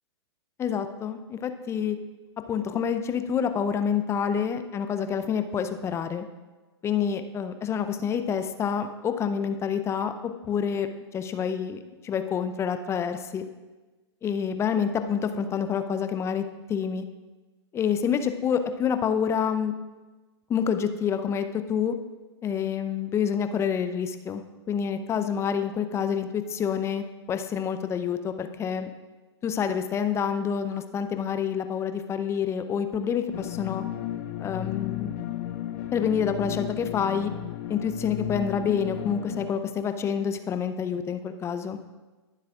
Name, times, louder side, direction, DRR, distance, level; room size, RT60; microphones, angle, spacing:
voice 1, 0.6-2.0 2.5-6.2 6.8-10.1 10.5-10.9 11.1-13.4 14.2-16.4 16.7-17.0 17.7-19.7 20.5-21.9 22.4-28.9 29.4-33.8 34.4-35.1 35.9-37.3 37.7-41.8, left 7 dB, 20° left, 9 dB, 0.6 m, -27 dB
sound 1, 33.3-39.5, left 12 dB, 45° left, 1.1 m, -34 dB
21.5 x 7.4 x 2.5 m, 1.2 s
hypercardioid pair, 115°, 14 cm